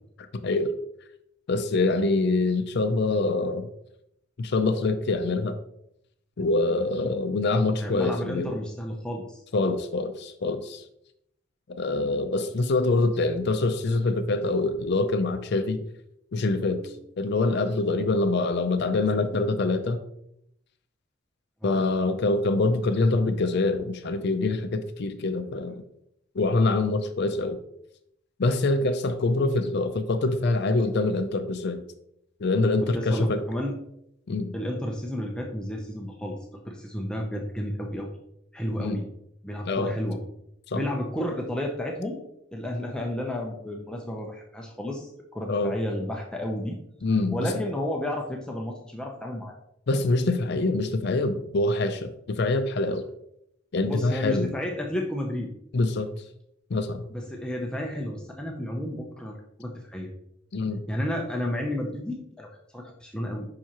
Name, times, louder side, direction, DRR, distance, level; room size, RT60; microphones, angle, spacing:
voice 1, 0.4-0.7 1.5-3.7 4.4-5.6 6.4-8.6 9.5-10.8 11.8-15.8 16.3-20.0 21.6-25.8 26.4-27.6 28.4-31.8 32.4-33.4 34.3-34.5 38.8-39.0 39.6-40.0 40.7-40.8 45.5-45.7 47.0-47.4 49.9-53.0 53.7-54.5 55.7-56.1 56.7-57.0 60.5-60.8, left 2 dB, 55° left, 9 dB, 0.5 m, -25 dB
voice 2, 7.8-9.4 16.5-17.0 21.6-21.8 32.8-33.8 34.5-38.1 38.5-39.0 39.4-40.2 40.7-42.2 42.5-46.8 47.3-49.5 53.8-55.5 57.1-60.1 60.9-63.5, left 1 dB, 5° left, 0 dB, 0.6 m, -32 dB
7.4 x 5.6 x 2.9 m, 0.77 s
head